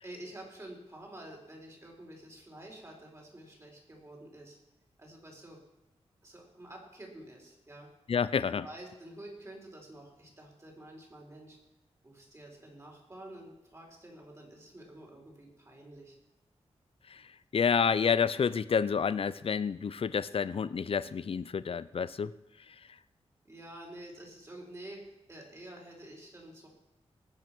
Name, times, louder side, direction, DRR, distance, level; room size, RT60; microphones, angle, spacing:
voice 1, 0.0-4.6 5.0-5.6 6.2-7.9 8.3-11.6 12.0-16.1 23.4-26.7, right 1 dB, 25° right, -1 dB, 4.6 m, -49 dB
voice 2, 8.1-8.7 17.1-17.2 17.5-22.3, left 6 dB, 55° left, 15 dB, 0.6 m, -29 dB
19.5 x 7.5 x 6.1 m, 0.93 s
wide cardioid pair, 105°, 11 cm